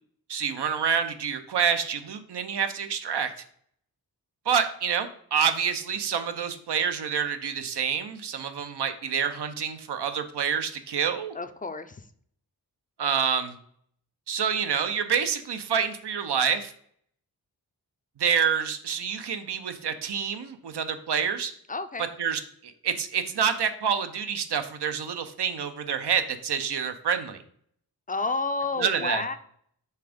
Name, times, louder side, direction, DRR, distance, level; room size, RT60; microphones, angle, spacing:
voice 1, 0.3-3.3 4.5-11.3 13.0-13.5 14.3-16.7 18.2-21.5 22.2-27.4 28.8-29.2, right 7 dB, 90° right, 9 dB, 0.7 m, -27 dB
voice 2, 11.3-12.0 21.7-22.1 28.1-29.4, left 3 dB, 25° left, 10 dB, 0.4 m, -30 dB
5.7 x 3.4 x 5.1 m, 0.64 s
wide cardioid pair, 125°, 39 cm